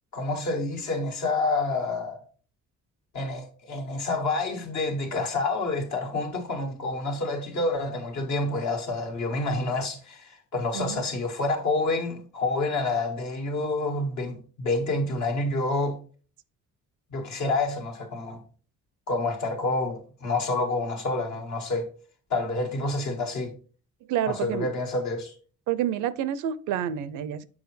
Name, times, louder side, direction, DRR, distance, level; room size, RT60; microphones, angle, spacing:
voice 1, 0.1-2.2 3.1-16.0 17.1-18.4 19.1-21.9 22.3-23.5 24.3-25.3, left 2 dB, 70° left, 1.6 m, -28 dB
voice 2, 24.1-24.7 25.7-27.4, right 10 dB, 85° right, 0.5 m, -28 dB
7.1 x 4.9 x 3.2 m
cardioid pair, 90°, 30 cm